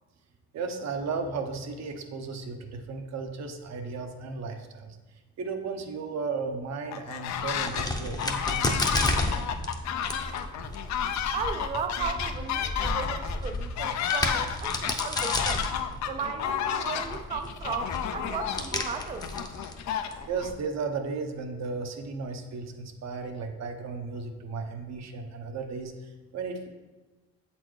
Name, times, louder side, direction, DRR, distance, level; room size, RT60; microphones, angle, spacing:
voice 1, 0.5-5.0 5.4-9.1 20.3-26.7, right 4 dB, 60° right, 5 dB, 0.8 m, -35 dB
sound 1, 6.9-7.9 8.2-20.5, left 9 dB, 65° left, 0.5 m, -32 dB
Crack, 7.3-20.5, left 1 dB, 15° left, 0.7 m, -33 dB
voice 2, 11.3-15.7 16.1-19.3, right 6 dB, 25° right, 8 dB, 0.3 m, -35 dB
7.5 x 4.3 x 3.1 m, 1.2 s
cardioid pair, 90°, 30 cm